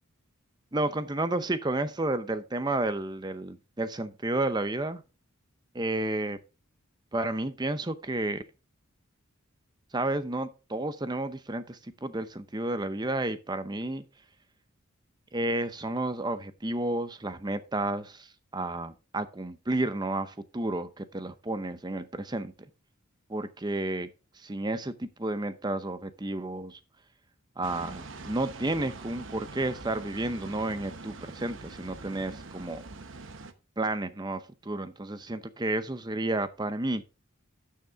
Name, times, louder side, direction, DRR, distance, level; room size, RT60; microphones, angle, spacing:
voice 1, 0.7-5.0 5.7-6.4 7.1-8.4 9.9-14.0 15.3-22.5 23.3-24.1 24.4-26.8 27.6-32.8 33.8-37.0, right 2 dB, 20° right, 0.7 m, -31 dB
sound 1, 27.6-33.5, right 3 dB, 60° right, 0.9 m, -44 dB
12.5 x 6.6 x 3.5 m
head